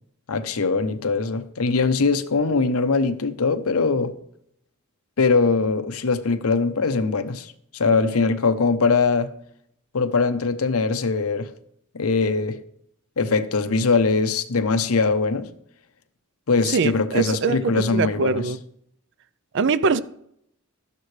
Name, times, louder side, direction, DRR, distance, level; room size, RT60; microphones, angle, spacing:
voice 1, 0.3-4.1 5.2-9.3 9.9-11.5 11.9-12.6 13.2-15.5 16.5-18.5, left 4 dB, 85° left, 0.8 m, -21 dB
voice 2, 16.7-18.6 19.5-20.0, right 5 dB, 60° right, 0.5 m, -23 dB
13.0 x 11.0 x 3.3 m
head